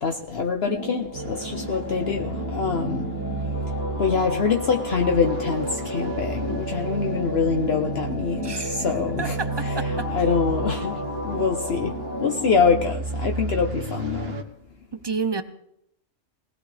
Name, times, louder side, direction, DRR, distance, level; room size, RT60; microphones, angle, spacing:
voice 1, 0.0-3.1 4.0-9.4 10.1-11.0 11.2-11.9 12.2-14.4, left 5 dB, 55° left, 3 dB, 1.1 m, -24 dB
sound 1, 0.6-12.8, left 1 dB, 15° left, 2.0 m, -33 dB
sound 2, 1.1-14.4, right 2 dB, 55° right, 1.3 m, -32 dB
voice 2, 8.4-8.9 9.2-10.1 14.9-15.4, right 5 dB, 25° right, 11 dB, 0.6 m, -30 dB
20.0 x 17.0 x 3.4 m, 0.77 s
omnidirectional pair, 1.3 m